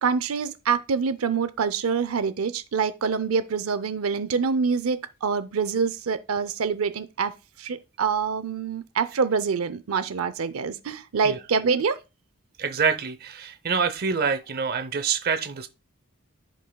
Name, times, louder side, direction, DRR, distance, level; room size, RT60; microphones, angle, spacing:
voice 1, 0.0-12.0, right 5 dB, 85° right, 0.6 m, -26 dB
voice 2, 12.6-15.7, right 5 dB, 50° right, 0.7 m, -26 dB
13.5 x 5.4 x 2.2 m
head